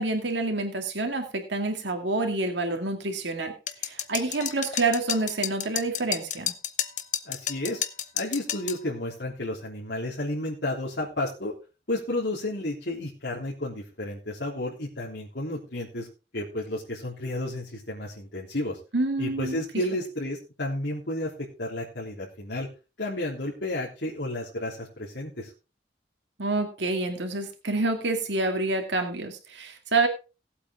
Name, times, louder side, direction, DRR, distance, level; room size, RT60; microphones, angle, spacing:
voice 1, 0.0-3.5 3.8-6.5 18.9-19.6 26.4-30.1, right 2 dB, 80° right, 4 dB, 2.2 m, -27 dB
sound 1, 3.7-8.8, left 10 dB, 40° left, 0.9 m, -31 dB
voice 2, 7.3-7.8 8.1-11.6 11.9-16.1 16.3-18.8 19.2-22.7 23.0-25.5, left 1 dB, 70° left, -5 dB, 3.3 m, -32 dB
17.5 x 8.3 x 3.6 m, 0.32 s
head